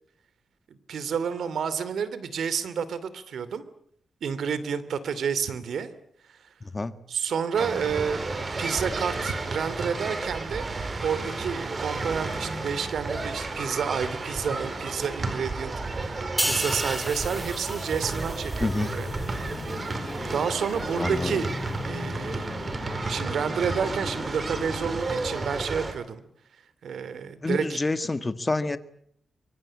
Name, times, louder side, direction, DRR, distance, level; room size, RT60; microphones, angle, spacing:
voice 1, 0.7-3.6 4.2-5.9 7.1-8.2 8.6-10.6 11.0-19.1 20.3-21.5 21.8-22.5 23.1-26.2 26.8-27.8, right 7 dB, 80° right, 15 dB, 2.8 m, -30 dB
sound 1, 7.6-25.9, right 3 dB, 35° right, 4.4 m, -32 dB
sound 2, 16.4-19.9 20.3-20.5, right 1 dB, 5° right, 1.7 m, -33 dB
sound 3, 17.9-26.0, left 4 dB, 40° left, 2.0 m, -39 dB
voice 2, 21.0-21.4 27.4-28.8, left 2 dB, 25° left, 11 dB, 1.7 m, -27 dB
25.0 x 24.0 x 8.7 m, 0.68 s
wide cardioid pair, 105°, 0 cm